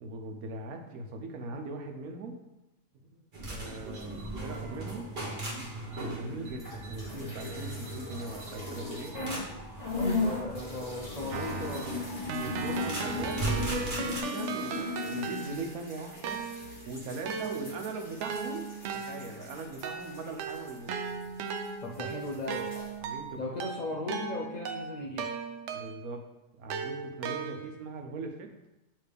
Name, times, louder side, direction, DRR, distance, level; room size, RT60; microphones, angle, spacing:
voice 1, 0.0-2.4 2.9-5.1 6.0-9.5 12.4-16.4 16.9-20.9 23.0-23.4 25.7-26.2 26.6-28.5, right 3 dB, 90° right, 3 dB, 1.2 m, -40 dB
sound 1, 3.3-14.2, right 2 dB, 40° right, 1.1 m, -38 dB
sound 2, 6.5-9.5 9.8-21.7 21.9-22.9, left 4 dB, 30° left, 1.6 m, -38 dB
voice 2, 9.9-12.1 21.8-22.7 23.4-25.3, left 2 dB, 65° left, -3 dB, 0.4 m, -37 dB
Keyboard (musical), 11.3-15.8 16.2-26.2 26.7-27.9, right 5 dB, 65° right, 0.8 m, -37 dB
8.4 x 3.3 x 3.4 m, 0.96 s
omnidirectional pair, 1.5 m